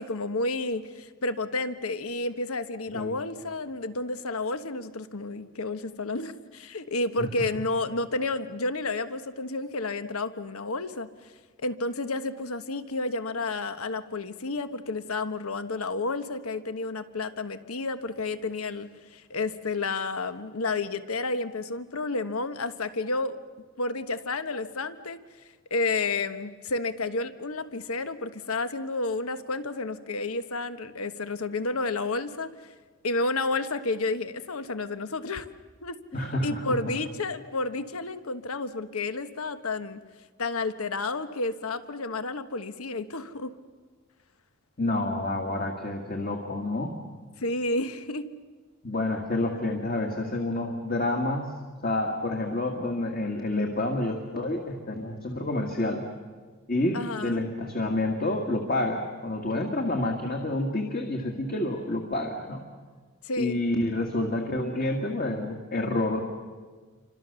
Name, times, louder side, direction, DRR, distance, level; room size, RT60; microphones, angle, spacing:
voice 1, 0.0-11.1 11.6-23.4 23.8-25.2 25.7-32.5 33.0-35.5 35.8-36.0 36.4-40.0 40.4-43.5 47.4-48.2 56.9-57.5 63.2-63.6, left 3 dB, 85° left, 11 dB, 1.2 m, -31 dB
voice 2, 36.1-36.9 44.8-46.9 48.8-56.1 56.7-62.6 63.4-66.2, left 2 dB, 40° left, 2 dB, 2.2 m, -29 dB
29.0 x 25.5 x 6.9 m, 1.4 s
head